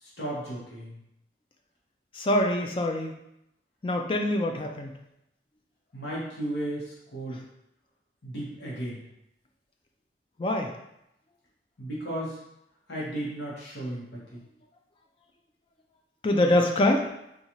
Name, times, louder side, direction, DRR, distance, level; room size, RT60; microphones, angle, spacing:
voice 1, 0.0-1.0 5.9-7.4 8.2-9.0 11.8-12.4 12.9-14.0 14.3-14.4, right 1 dB, 80° left, -6 dB, 1.1 m, -34 dB
voice 2, 2.2-3.1 3.8-5.0 10.4-10.7 16.2-17.1, left 1 dB, 30° left, 3 dB, 0.4 m, -24 dB
4.0 x 2.3 x 3.0 m, 0.82 s
head